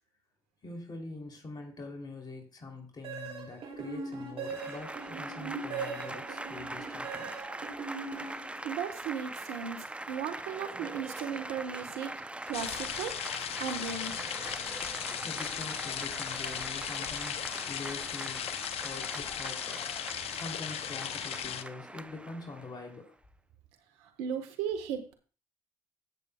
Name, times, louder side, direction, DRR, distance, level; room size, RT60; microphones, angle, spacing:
voice 1, 0.6-7.3 15.2-23.2, left 3 dB, 40° left, 1 dB, 3.1 m, -44 dB
sound 1, 3.0-8.9, right 4 dB, 60° right, 2.9 m, -40 dB
Applause / Crowd, 4.4-23.0, right 1 dB, 10° right, 0.6 m, -42 dB
voice 2, 8.3-12.1 12.5-13.2 13.6-14.3 24.0-25.1, right 7 dB, 90° right, 7 dB, 1.3 m, -36 dB
sound 2, 12.5-21.6, left 9 dB, 65° left, 0.9 m, -37 dB
16.5 x 6.9 x 2.3 m, 0.39 s
supercardioid pair, 55°, 11 cm